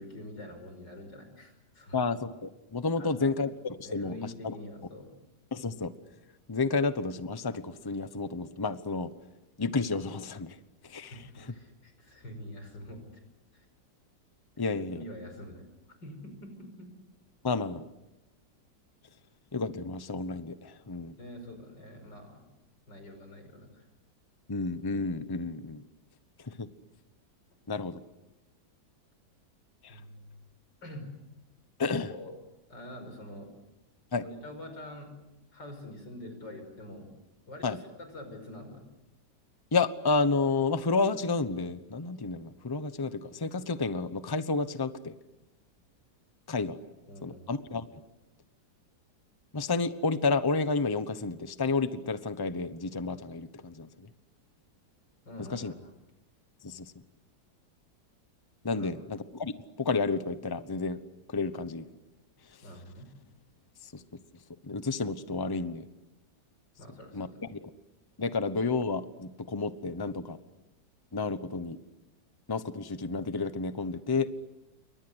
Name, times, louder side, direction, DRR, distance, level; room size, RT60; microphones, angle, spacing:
voice 1, 0.0-2.0 3.0-3.3 3.8-5.1 11.1-13.2 13.5-13.7 14.9-15.7 16.0-16.9 21.2-22.4 22.9-23.9 29.9-30.4 30.8-31.1 31.9-32.3 32.7-33.5 34.2-35.1 35.5-37.1 37.5-38.8 47.1-47.5 55.3-55.9 58.7-58.9 62.6-63.1 66.8-67.4, left 1 dB, 80° left, 6 dB, 6.2 m, -45 dB
voice 2, 1.9-4.5 5.5-5.9 6.5-9.1 9.6-10.6 10.8-11.1 14.6-15.0 17.4-17.8 19.5-21.2 24.5-25.8 26.4-26.7 27.7-28.0 29.8-30.0 31.8-32.1 34.1-34.2 37.6-37.8 39.7-45.1 46.5-46.8 47.2-48.0 49.5-54.1 55.4-55.7 56.6-56.9 58.6-59.5 59.8-61.0 61.3-61.9 63.8-64.0 64.6-65.8 67.1-67.7 68.2-70.4 71.1-71.8 72.5-74.3, left 4 dB, 15° left, 12 dB, 0.8 m, -31 dB
29.0 x 24.0 x 8.1 m, 0.97 s
omnidirectional pair, 1.9 m